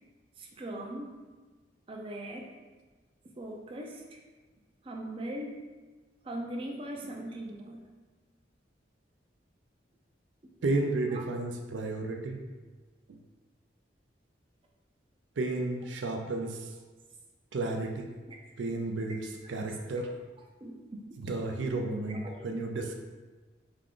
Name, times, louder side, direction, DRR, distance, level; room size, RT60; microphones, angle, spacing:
voice 1, 0.4-1.2 1.9-2.5 3.4-4.0 4.9-5.5 6.3-7.8 11.1-11.2 18.3-18.4 20.6-21.0 21.8-21.9 22.2-22.4, right 1 dB, 30° right, 1 dB, 0.4 m, -39 dB
voice 2, 10.6-12.4 13.1-13.2 15.4-16.7 17.5-18.1 18.6-20.1 21.2-22.9, right 2 dB, 90° right, 3 dB, 0.4 m, -32 dB
3.5 x 2.4 x 3.6 m, 1.3 s
head